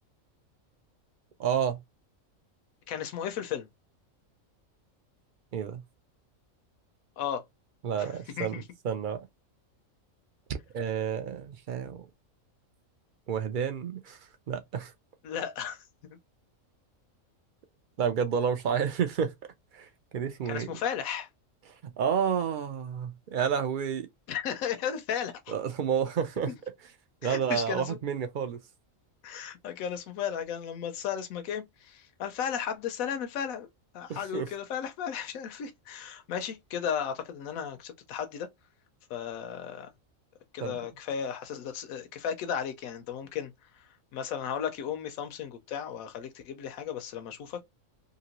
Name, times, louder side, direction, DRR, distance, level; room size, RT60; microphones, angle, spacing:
voice 1, 1.4-1.8 5.5-5.8 7.8-8.5 8.8-9.3 10.5-12.1 13.3-14.2 14.5-14.9 18.0-19.3 19.7-20.7 21.8-24.1 25.5-26.5 27.2-28.6 34.1-34.5 40.6-40.8, right 7 dB, 75° right, 0.4 m, -30 dB
voice 2, 2.9-3.7 7.2-7.4 8.0-8.1 8.4-8.6 15.2-15.8 16.1-16.2 20.5-21.3 24.3-25.5 26.5-26.6 27.2-28.0 29.2-33.7 33.9-38.5 39.1-39.9 40.5-47.6, left 8 dB, 90° left, 1.0 m, -35 dB
2.9 x 2.8 x 2.8 m
omnidirectional pair, 1.4 m